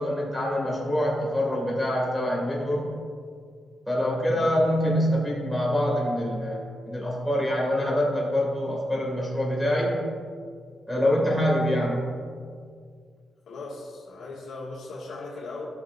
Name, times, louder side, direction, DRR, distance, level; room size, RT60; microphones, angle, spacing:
voice 1, 0.0-2.9 3.9-10.0 10.9-12.1, equal, 5° left, -5 dB, 2.1 m, -25 dB
voice 2, 13.5-15.7, left 3 dB, 80° left, -4 dB, 1.9 m, -38 dB
15.0 x 5.8 x 2.6 m, 2.1 s
wide cardioid pair, 145°, 0 cm